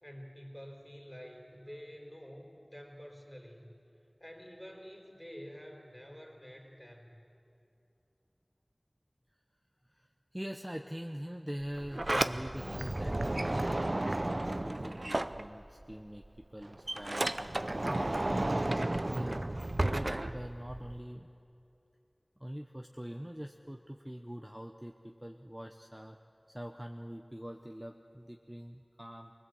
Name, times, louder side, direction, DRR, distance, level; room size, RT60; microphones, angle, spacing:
voice 1, 0.0-3.7 4.2-7.2, equal, 15° left, 1 dB, 3.9 m, -49 dB
voice 2, 9.9-16.2 16.5-19.4 19.8-21.3 22.4-26.2 26.5-29.3, equal, 15° right, 3 dB, 0.9 m, -44 dB
Sliding door, 11.6-15.9 16.2-21.0, right 1 dB, 55° right, 0.6 m, -33 dB
24.0 x 20.5 x 7.8 m, 2.7 s
wide cardioid pair, 40°, 0 cm